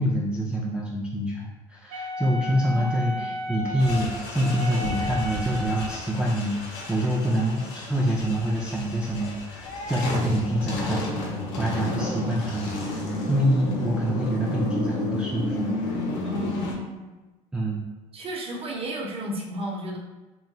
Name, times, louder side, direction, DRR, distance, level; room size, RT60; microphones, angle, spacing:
voice 1, 0.0-15.7 17.5-17.8, equal, 5° right, -5 dB, 0.4 m, -26 dB
Wind instrument woodwind instrument, 1.9-6.1, left 1 dB, 75° right, 0.8 m, -34 dB
voice 2, 2.7-3.2 16.2-17.1 18.1-20.0, equal, 35° right, -1 dB, 0.7 m, -33 dB
sound 1, 3.8-16.7, left 2 dB, 85° left, 0.6 m, -32 dB
3.0 x 2.6 x 2.3 m, 1.1 s
supercardioid pair, 75°, 16 cm